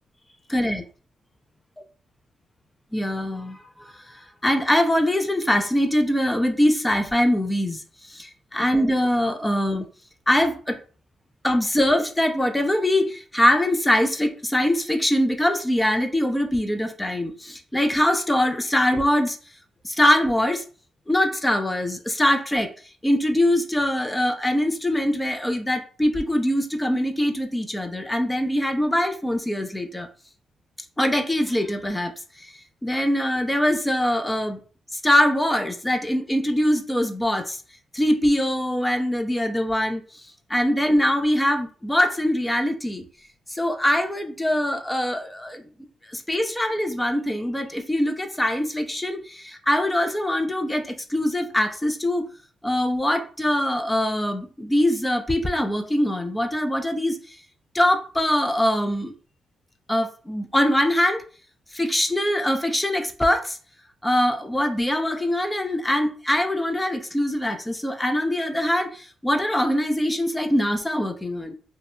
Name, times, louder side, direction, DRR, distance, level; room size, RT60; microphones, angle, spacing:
voice 1, 0.5-0.8 2.9-9.9 10.3-10.8 11.4-19.4 19.8-20.7 21.1-22.7 23.0-30.1 31.0-34.6 34.9-37.6 37.9-40.2 40.5-43.1 43.5-45.6 46.1-52.3 52.6-57.4 57.7-59.1 59.9-61.2 61.7-63.6 64.0-71.5, left 1 dB, 10° left, 0.3 m, -23 dB
2.6 x 2.1 x 2.5 m
cardioid pair, 95°, 0 cm